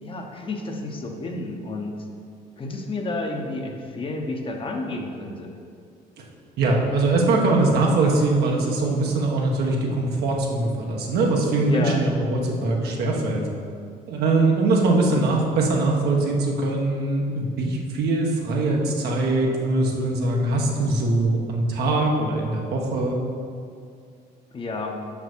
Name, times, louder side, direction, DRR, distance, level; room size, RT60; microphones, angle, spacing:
voice 1, 0.0-2.0 2.6-5.5 11.7-12.0 24.5-25.0, left 2 dB, 30° left, 2 dB, 1.0 m, -30 dB
voice 2, 6.6-13.4 14.1-23.2, right 2 dB, 70° right, -1 dB, 1.4 m, -22 dB
5.9 x 5.4 x 6.2 m, 2.3 s
cardioid pair, 110°, 17 cm